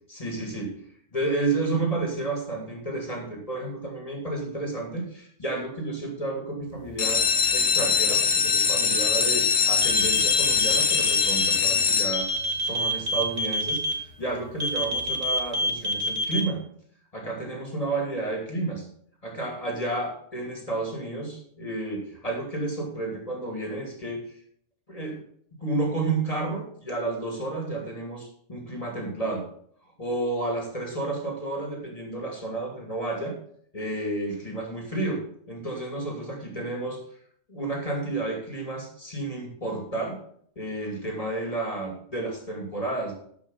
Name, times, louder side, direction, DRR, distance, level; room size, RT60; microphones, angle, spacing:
voice 1, 0.1-0.8 1.1-7.2 7.5-12.3 12.6-16.6 17.1-18.8 19.2-24.4 24.9-25.2 25.6-29.4 30.0-33.3 33.7-37.0 37.5-40.2 40.6-43.1, right 2 dB, 30° left, 1 dB, 2.5 m, -31 dB
sound 1, 6.9-12.6 13.2-13.7 14.1-14.2 14.4-14.5 15.0-15.1, left 6 dB, 90° left, 1.4 m, -23 dB
sound 2, 9.8-11.5 12.1-13.9 14.6-16.4, left 1 dB, 40° right, 1.8 m, -26 dB
12.5 x 5.9 x 5.3 m, 0.62 s
omnidirectional pair, 1.3 m